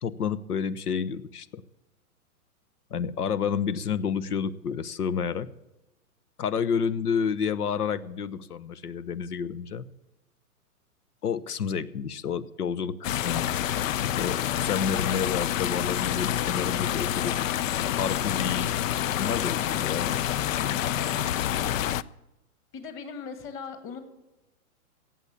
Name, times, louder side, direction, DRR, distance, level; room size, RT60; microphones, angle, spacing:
voice 1, 0.0-1.6 2.9-5.5 6.4-9.9 11.2-13.5 14.2-17.5 17.9-20.2, left 7 dB, 85° left, 18 dB, 1.0 m, -30 dB
sound 1, 13.0-22.0, left 11 dB, 60° left, 0.6 m, -27 dB
voice 2, 21.0-21.3 22.7-24.0, left 5 dB, 25° left, 8 dB, 2.3 m, -39 dB
17.0 x 7.5 x 8.3 m, 1.0 s
hypercardioid pair, 130°, 45 cm